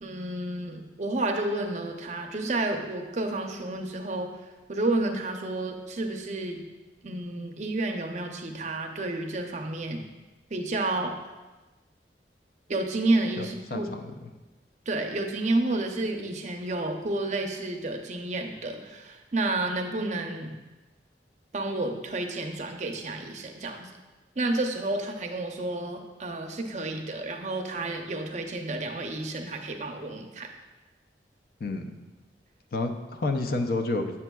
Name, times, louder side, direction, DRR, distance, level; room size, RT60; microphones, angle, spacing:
voice 1, 0.0-6.6 7.0-10.0 10.5-11.1 12.7-13.9 14.9-20.5 21.5-23.9 24.4-30.5, right 2 dB, 40° right, 3 dB, 0.5 m, -30 dB
voice 2, 13.4-14.3 31.6-32.0 32.7-34.2, left 2 dB, 55° left, 4 dB, 0.5 m, -30 dB
7.3 x 7.0 x 2.3 m, 1.2 s
head